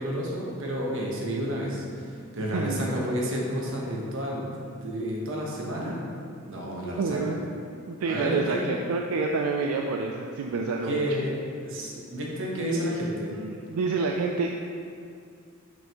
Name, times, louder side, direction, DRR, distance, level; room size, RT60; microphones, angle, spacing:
voice 1, 0.0-7.3 8.1-8.6 10.8-11.3 11.6-13.3, equal, 65° right, -3 dB, 1.1 m, -31 dB
voice 2, 2.5-2.9 7.0-7.4 7.9-11.1 13.3-14.5, right 4 dB, 85° right, 1 dB, 0.4 m, -28 dB
5.9 x 5.5 x 3.0 m, 2.3 s
head